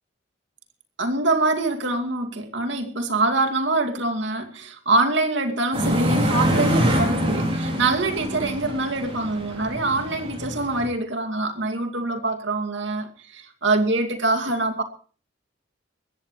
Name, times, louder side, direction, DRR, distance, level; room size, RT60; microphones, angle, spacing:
voice 1, 1.0-14.8, right 2 dB, 70° right, 5 dB, 2.6 m, -24 dB
sound 1, 5.7-10.8, equal, 30° right, 5.4 m, -25 dB
21.0 x 16.0 x 3.2 m, 0.39 s
head